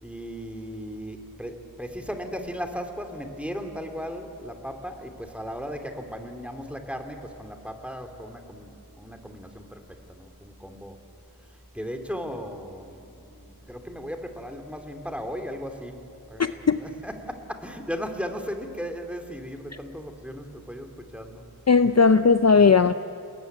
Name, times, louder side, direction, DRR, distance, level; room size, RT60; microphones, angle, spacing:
voice 1, 0.0-11.0 11.7-21.4 22.5-22.7, equal, 5° right, 5 dB, 2.9 m, -36 dB
voice 2, 16.4-16.8 21.7-22.9, left 5 dB, 40° left, 11 dB, 0.6 m, -17 dB
28.5 x 20.0 x 9.4 m, 2.6 s
wide cardioid pair, 45°, 39 cm